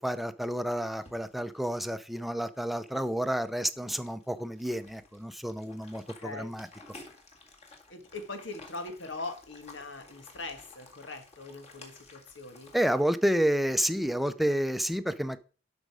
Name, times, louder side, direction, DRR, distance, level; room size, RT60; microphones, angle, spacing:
voice 1, 0.0-6.7 12.7-15.4, equal, ahead, 0.6 m, -30 dB
sound 1, 0.9-12.9, left 3 dB, 35° left, 2.0 m, -54 dB
voice 2, 6.0-6.5 7.9-12.7, left 3 dB, 85° left, 1.8 m, -41 dB
12.0 x 5.1 x 4.9 m
head